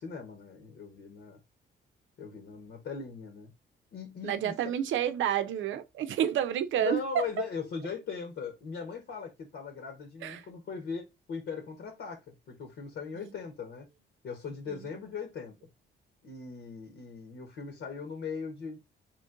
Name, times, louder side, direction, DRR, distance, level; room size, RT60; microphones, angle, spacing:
voice 1, 0.0-1.4 2.2-3.5 3.9-4.7 6.8-12.2 12.5-13.9 14.2-15.5 16.2-18.8, left 5 dB, 70° left, 1.3 m, -39 dB
voice 2, 4.2-7.3 10.2-10.4 14.7-14.8, right 10 dB, 75° right, 0.6 m, -29 dB
3.8 x 3.2 x 3.8 m
cardioid pair, 90°, 20 cm